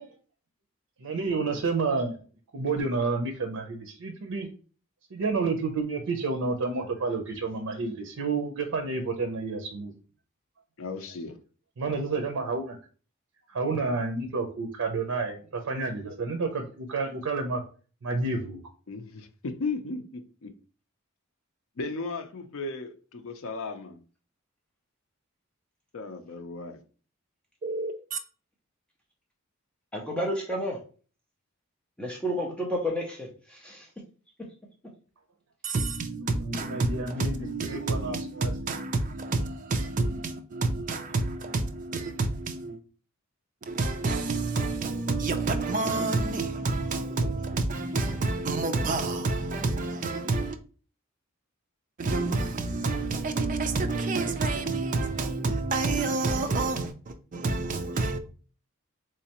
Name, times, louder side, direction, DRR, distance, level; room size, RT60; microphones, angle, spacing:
voice 1, 1.0-2.1 2.5-4.5 5.1-9.9 11.8-12.8 13.5-17.6 18.0-18.6 36.4-38.5, right 3 dB, 85° right, 0.6 m, -30 dB
voice 2, 10.8-11.4 18.9-20.5 21.8-24.0 25.9-26.8, left 3 dB, 70° left, 0.5 m, -36 dB
voice 3, 27.6-28.2 35.6-42.8 43.7-50.6 52.0-58.2, right 3 dB, 40° right, 0.4 m, -29 dB
voice 4, 29.9-30.8 32.0-33.9, equal, 5° left, 0.6 m, -31 dB
3.7 x 3.2 x 2.9 m
head